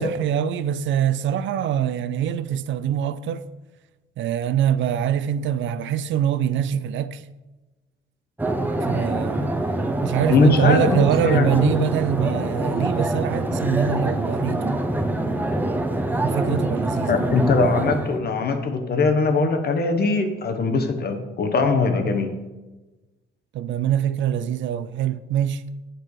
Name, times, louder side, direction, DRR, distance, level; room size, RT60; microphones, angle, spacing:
voice 1, 0.0-3.4 4.2-7.2 8.9-9.5 10.0-14.8 16.2-17.3 23.5-25.7, right 9 dB, 70° right, 0.4 m, -24 dB
sound 1, 8.4-18.2, right 1 dB, 10° right, 0.7 m, -25 dB
voice 2, 10.3-11.9 17.1-22.4, left 4 dB, 55° left, 1.1 m, -21 dB
7.5 x 4.6 x 4.8 m
cardioid pair, 90°, 20 cm